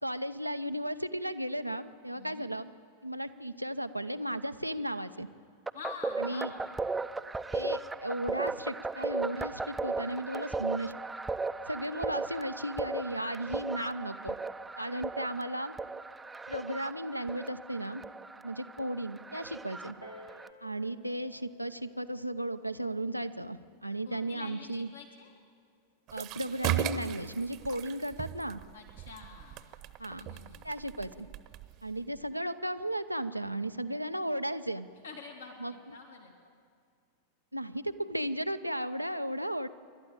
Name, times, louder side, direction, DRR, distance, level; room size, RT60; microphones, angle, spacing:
voice 1, 0.0-2.7 3.0-5.3 6.2-6.5 7.5-10.9 11.7-14.4 14.8-15.7 16.5-18.0 18.4-20.0 20.6-24.9 26.1-28.6 30.0-30.2 30.6-31.3 31.8-34.9 35.6-35.7 37.5-39.7, right 1 dB, 90° right, 9 dB, 0.7 m, -35 dB
voice 2, 2.1-2.5 5.7-6.8 24.0-25.3 28.7-29.7 30.2-30.7 35.0-36.3, left 5 dB, 70° left, 2 dB, 2.7 m, -47 dB
sound 1, 5.7-20.5, right 3 dB, 10° right, 0.6 m, -37 dB
Piano, 20.0-25.2 26.0-26.1, equal, 90° left, 2.2 m, -56 dB
sound 2, 26.1-32.3, right 11 dB, 40° right, 1.0 m, -37 dB
27.0 x 12.5 x 8.9 m, 2.1 s
figure-of-eight pair, 90°, 0 cm